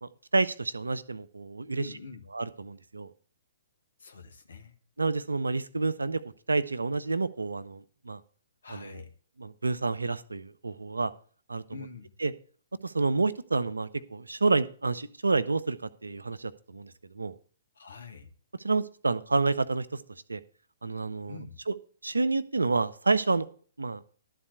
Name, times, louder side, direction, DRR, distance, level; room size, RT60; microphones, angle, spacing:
voice 1, 0.0-1.9 2.3-3.1 5.0-6.2 6.5-8.2 8.7-9.0 9.4-11.1 11.5-11.6 12.2-12.3 12.8-15.8 16.0-17.3 18.6-20.0 20.3-20.4 20.8-21.4 21.7-21.8 22.0-23.5 23.8-24.0, right 3 dB, 75° right, 14 dB, 0.7 m, -29 dB
voice 2, 1.7-2.3 4.0-4.7 8.6-9.1 11.7-12.1 17.7-18.3 21.3-21.6, left 5 dB, 65° left, 7 dB, 1.7 m, -45 dB
12.0 x 4.2 x 8.0 m, 0.43 s
figure-of-eight pair, 120°, 0 cm